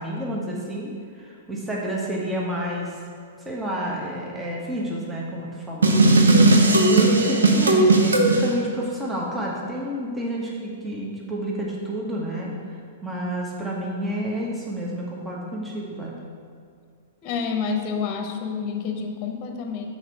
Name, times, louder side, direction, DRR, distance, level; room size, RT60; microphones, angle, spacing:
voice 1, 0.0-2.9 3.4-5.9 6.7-12.5 13.0-16.1, equal, 10° right, -3 dB, 1.2 m, -29 dB
sound 1, 5.8-8.5, right 2 dB, 80° right, 0.8 m, -16 dB
voice 2, 17.2-19.9, left 5 dB, 40° left, 4 dB, 0.9 m, -28 dB
6.6 x 4.3 x 5.7 m, 2.1 s
figure-of-eight pair, 105°, 0 cm